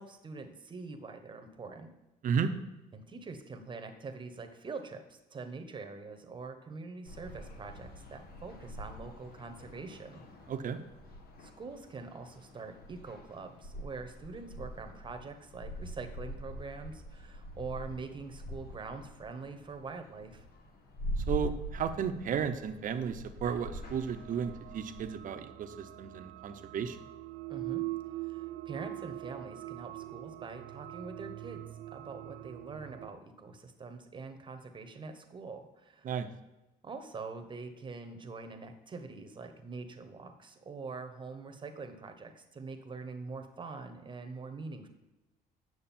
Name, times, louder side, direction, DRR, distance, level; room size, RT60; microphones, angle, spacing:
voice 1, 0.0-1.9 2.9-10.2 11.4-20.4 27.5-27.8 28.2-31.6 31.9-36.1 36.8-44.9, right 4 dB, 30° right, 6 dB, 1.1 m, -44 dB
sound 1, 7.1-25.0, equal, 65° left, 1.7 m, -44 dB
voice 2, 10.5-10.8 21.3-27.0 36.0-36.3, right 7 dB, 50° right, 8 dB, 0.8 m, -33 dB
sound 2, 23.6-33.1, right 17 dB, 80° right, 0.5 m, -43 dB
9.0 x 6.4 x 4.4 m, 1.0 s
cardioid pair, 110°, 17 cm